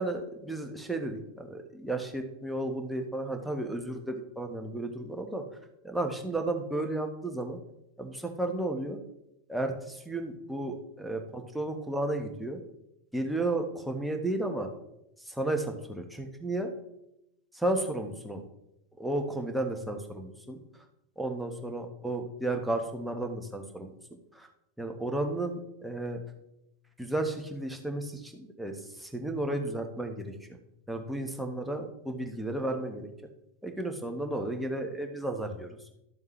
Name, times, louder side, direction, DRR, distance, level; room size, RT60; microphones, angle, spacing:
voice 1, 0.0-5.4 5.8-7.6 8.0-9.0 9.5-12.6 13.1-14.7 15.2-16.7 17.5-18.4 19.0-20.6 21.2-23.9 24.3-24.5 24.8-26.2 27.0-30.3 30.9-33.1 33.6-35.8, right 2 dB, ahead, 3 dB, 1.3 m, -33 dB
12.5 x 7.2 x 3.2 m, 0.85 s
figure-of-eight pair, 90°, 0 cm